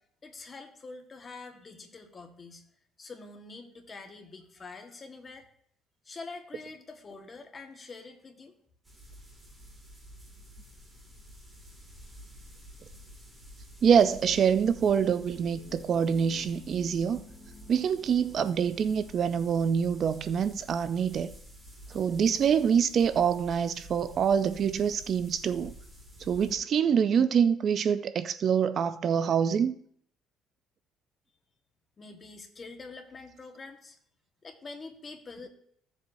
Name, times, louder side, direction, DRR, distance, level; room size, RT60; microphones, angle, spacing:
voice 1, 0.0-2.6 3.0-5.5 6.0-8.5 32.0-34.0 34.4-35.5, left 3 dB, 25° left, 1.4 m, -45 dB
sound 1, 8.8-26.6, equal, 10° right, 2.1 m, -50 dB
voice 2, 13.8-17.2 17.7-21.3 21.9-25.7 26.2-29.8, right 7 dB, 45° right, 0.4 m, -25 dB
sound 2, 14.1-20.8, left 3 dB, 90° left, 2.5 m, -53 dB
15.0 x 7.3 x 2.6 m
cardioid pair, 130°, 0 cm